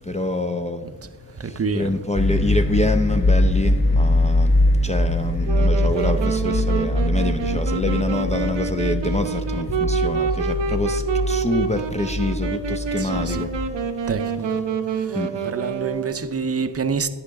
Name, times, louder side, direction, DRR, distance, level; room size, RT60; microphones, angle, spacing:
voice 1, 0.0-14.1 14.8-15.5, left 2 dB, 15° left, 0.4 m, -27 dB
voice 2, 1.3-2.0 13.0-13.5 14.1-14.6 14.9-17.1, right 5 dB, 35° right, 0.6 m, -28 dB
sound 1, 2.1-13.7, left 1 dB, 50° left, 2.7 m, -22 dB
Wind instrument woodwind instrument, 5.4-16.4, right 6 dB, 85° right, 0.7 m, -27 dB
10.0 x 9.6 x 3.4 m
wide cardioid pair, 70°, 42 cm